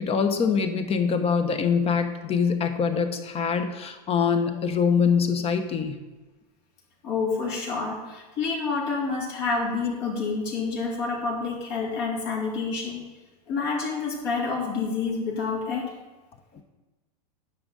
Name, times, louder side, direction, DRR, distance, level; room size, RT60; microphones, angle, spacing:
voice 1, 0.0-6.0 16.5-16.6, left 6 dB, 30° left, 8 dB, 0.9 m, -24 dB
voice 2, 7.0-13.0 13.5-15.9, left 4 dB, 60° left, -3 dB, 2.8 m, -28 dB
9.8 x 6.2 x 4.0 m, 1.2 s
hypercardioid pair, 110°, 21 cm